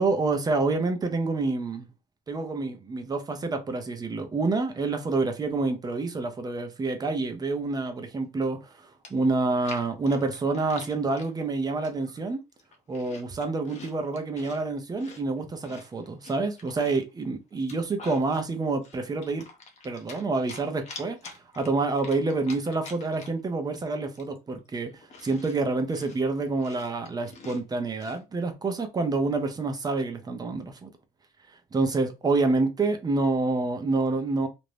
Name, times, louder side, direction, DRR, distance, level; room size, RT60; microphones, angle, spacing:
voice 1, 0.0-1.9 2.3-12.4 12.9-19.4 19.8-30.9 31.7-34.5, right 3 dB, 25° right, 0.6 m, -28 dB
Chewing mastication, 8.7-8.8 9.0-11.3 11.8-12.2 12.5-14.6 15.0-17.1 17.5-18.4 18.8-20.2 20.5-23.5 23.8-23.9 24.1-28.2, left 3 dB, 40° left, 0.7 m, -46 dB
2.6 x 2.1 x 3.2 m
cardioid pair, 110°, 17 cm